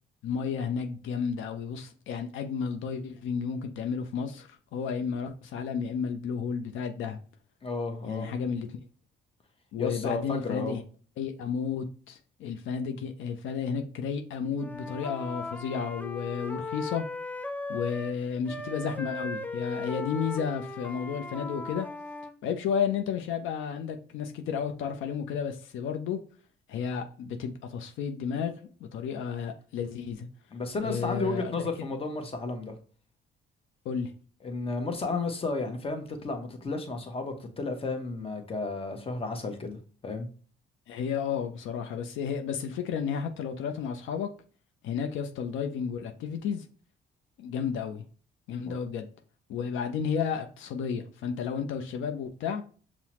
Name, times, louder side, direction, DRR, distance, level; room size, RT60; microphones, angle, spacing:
voice 1, 0.2-7.2 8.0-8.7 9.7-10.8 11.2-17.0 17.7-21.9 22.4-26.2 26.7-28.5 28.8-30.3 30.8-31.5 33.9-34.1 40.9-44.3 44.8-46.6 47.4-48.0 48.5-49.1 49.5-52.6, left 6 dB, 85° left, 0.5 m, -32 dB
voice 2, 7.6-8.3 9.8-10.8 30.5-32.7 34.4-40.3 48.6-48.7, left 3 dB, 30° left, 0.8 m, -33 dB
Wind instrument woodwind instrument, 14.5-18.2 18.5-22.3, left 2 dB, 10° left, 0.3 m, -37 dB
5.6 x 2.0 x 2.9 m
cardioid pair, 90°, 20 cm